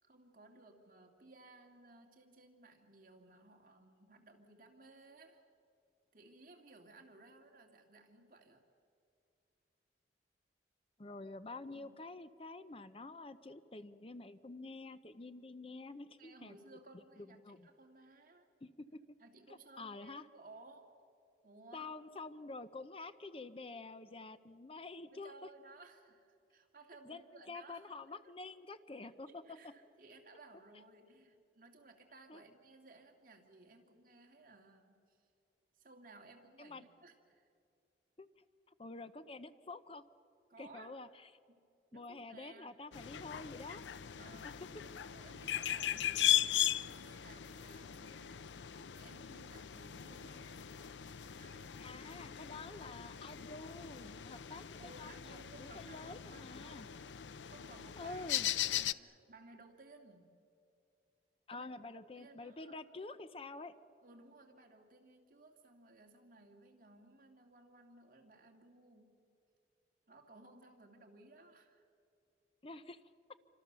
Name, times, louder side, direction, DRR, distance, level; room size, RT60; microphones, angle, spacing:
voice 1, 0.0-5.4 6.1-8.6 11.7-12.0 16.2-18.5 19.2-20.9 21.4-21.9 25.1-28.3 29.0-35.2 35.8-37.5 40.5-41.0 41.5-41.6 41.9-42.8 44.2-50.7 51.2-51.8 54.8-56.8 57.4-58.3 58.5-60.3 61.5-62.8 64.0-69.3 70.1-71.8, right 2 dB, 50° right, 2 dB, 2.6 m, -59 dB
voice 2, 11.0-16.6 17.2-17.7 18.6-19.0 19.5-20.3 21.7-25.3 27.0-29.4 32.3-32.4 36.6-36.8 38.2-38.3 38.8-40.1 40.6-41.1 41.9-43.8 44.4-44.5 51.8-56.9 58.0-58.5 61.5-63.7 72.6-73.0, left 3 dB, 30° left, 12 dB, 0.6 m, -48 dB
sound 1, 42.9-58.9, left 11 dB, 90° left, 0.6 m, -38 dB
28.0 x 25.5 x 6.9 m, 2.4 s
head